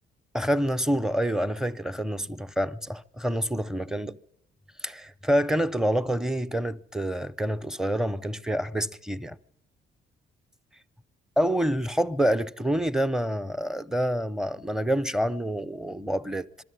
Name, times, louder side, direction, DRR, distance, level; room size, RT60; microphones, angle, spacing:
voice 1, 0.3-4.2 4.8-9.4 11.4-16.5, equal, 5° right, 0.7 m, -27 dB
22.0 x 13.0 x 9.9 m
cardioid pair, 90°, 20 cm